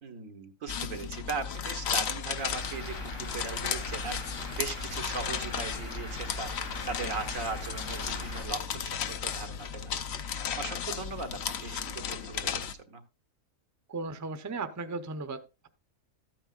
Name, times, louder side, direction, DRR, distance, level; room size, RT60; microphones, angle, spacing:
voice 1, 0.0-4.2 4.5-10.0 10.6-13.0, right 4 dB, 85° right, 6 dB, 1.7 m, -39 dB
sound 1, 0.7-12.7, left 7 dB, 60° left, 0.9 m, -35 dB
Truck / Idling, 2.4-8.4, equal, 90° left, 3.6 m, -41 dB
voice 2, 13.9-15.4, right 3 dB, 20° right, 9 dB, 0.6 m, -36 dB
13.5 x 8.7 x 2.4 m, 0.29 s
omnidirectional pair, 1.4 m